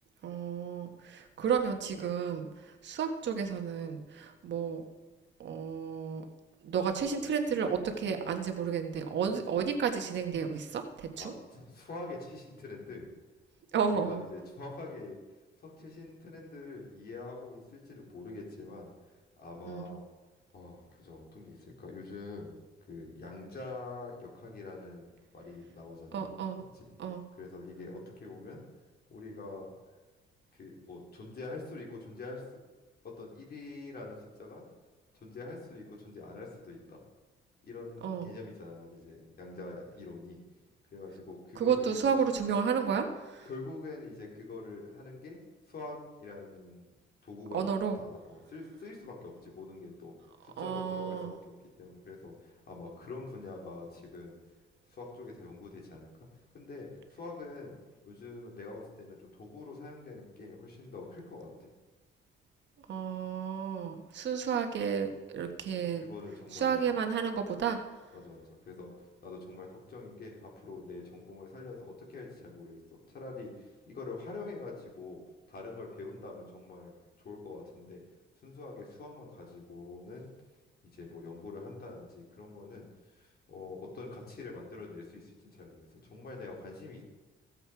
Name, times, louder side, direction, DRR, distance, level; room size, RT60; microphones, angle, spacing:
voice 1, 0.2-4.8 5.4-6.2 6.6-11.3 13.7-14.2 19.7-19.9 26.1-26.6 27.0-27.2 38.0-38.3 41.5-43.5 47.5-48.0 50.6-51.3 62.9-66.0 66.5-67.8, right 6 dB, 65° right, 5 dB, 1.6 m, -32 dB
voice 2, 11.2-13.1 13.9-15.2 15.6-18.9 19.4-20.0 20.5-22.5 22.9-25.1 25.3-26.3 26.7-26.9 27.4-28.6 29.1-29.7 30.5-32.6 33.0-34.6 35.1-37.0 37.6-40.4 40.9-42.1 43.4-45.4 45.7-46.9 47.2-50.1 50.4-54.3 54.9-56.1 56.5-57.8 58.0-61.7 66.0-66.8 68.1-68.9 69.2-72.8 73.1-75.2 75.5-76.9 77.2-78.0 78.4-80.3 80.9-87.0, left 3 dB, 50° left, -2 dB, 4.2 m, -45 dB
16.0 x 7.9 x 4.8 m, 1.2 s
cardioid pair, 90°, 20 cm